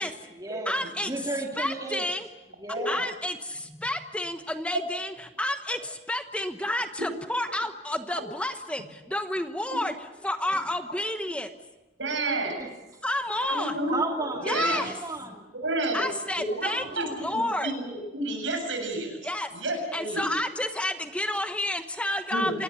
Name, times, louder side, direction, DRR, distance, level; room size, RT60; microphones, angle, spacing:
voice 1, 0.0-0.7 1.0-2.1 2.6-3.1 12.6-12.7 13.9-15.5, right 2 dB, 20° right, 1 dB, 2.5 m, -34 dB
voice 2, 0.7-1.1 1.6-2.3 2.9-11.5 13.0-13.8 14.4-14.9 15.9-17.7 19.2-19.5 19.9-22.6, left 1 dB, 5° left, 7 dB, 1.1 m, -30 dB
voice 3, 12.0-12.5 13.4-14.8 15.6-16.0 16.4-20.3 22.3-22.5, right 2 dB, 80° right, 4 dB, 7.6 m, -30 dB
28.0 x 19.0 x 8.1 m, 1.1 s
head